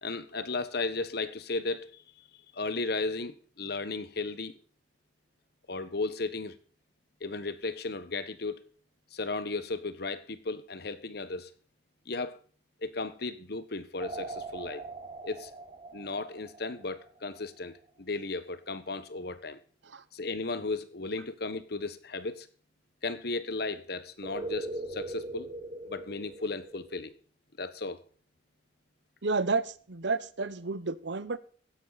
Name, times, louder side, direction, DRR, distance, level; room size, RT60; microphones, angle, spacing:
voice 1, 0.0-2.3 2.5-4.6 5.7-6.5 7.2-8.6 9.1-11.5 12.1-12.4 12.8-14.8 15.2-15.5 15.9-19.6 20.1-22.5 23.0-25.5 25.9-27.1 27.6-28.0, left 3 dB, 60° left, 1.3 m, -35 dB
sound 1, 14.0-17.4 24.2-27.0, right 2 dB, 35° right, 3.7 m, -41 dB
voice 2, 29.2-31.4, right 3 dB, 70° right, 1.0 m, -31 dB
15.5 x 11.0 x 4.1 m
head